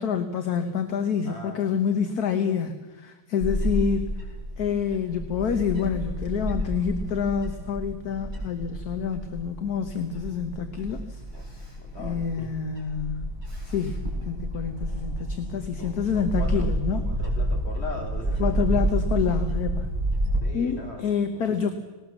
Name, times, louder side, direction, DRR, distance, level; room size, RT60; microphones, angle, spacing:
voice 1, 0.0-4.1 4.6-11.2 12.0-13.3 13.6-17.0 18.4-19.9 20.5-21.7, left 7 dB, 55° left, 7 dB, 1.5 m, -27 dB
voice 2, 1.2-1.6 3.5-3.7 11.3-12.5 15.8-16.7 17.0-18.5 20.4-21.6, left 2 dB, 30° left, 1 dB, 3.3 m, -40 dB
Bird / Wind, 3.4-20.4, right 1 dB, 20° right, 6.1 m, -30 dB
19.5 x 18.5 x 7.3 m, 1.3 s
omnidirectional pair, 2.1 m